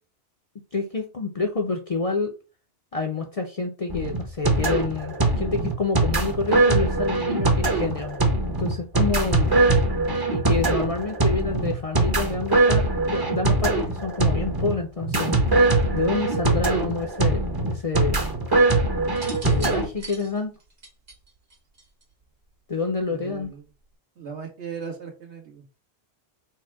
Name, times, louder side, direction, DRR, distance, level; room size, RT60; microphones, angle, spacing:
voice 1, 0.7-2.3 2.9-8.2 8.6-9.5 10.3-15.5 15.9-18.3 19.4-20.6 22.7-23.5, left 4 dB, 45° left, 0.5 m, -28 dB
sound 1, 3.9-19.9, right 2 dB, 25° right, 0.7 m, -22 dB
sound 2, 19.1-22.2 23.3-23.7, right 2 dB, 55° right, 1.6 m, -41 dB
voice 2, 23.1-23.6 24.2-25.7, right 6 dB, 75° right, 1.6 m, -37 dB
4.5 x 2.1 x 4.6 m
omnidirectional pair, 1.2 m